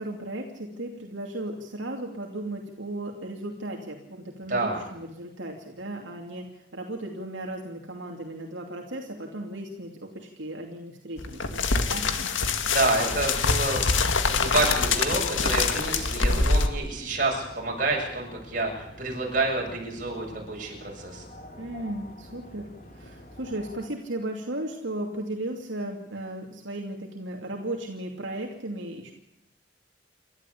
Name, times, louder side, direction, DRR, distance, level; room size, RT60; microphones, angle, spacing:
voice 1, 0.0-12.0 21.6-29.1, right 1 dB, 75° right, 1 dB, 2.8 m, -36 dB
voice 2, 4.5-4.8 12.6-21.2, right 2 dB, 45° right, 0 dB, 7.4 m, -28 dB
sound 1, 11.2-16.7, left 4 dB, 85° left, 2.0 m, -24 dB
sound 2, 13.3-23.9, left 1 dB, 40° left, 4.2 m, -47 dB
29.0 x 12.5 x 8.5 m, 0.84 s
head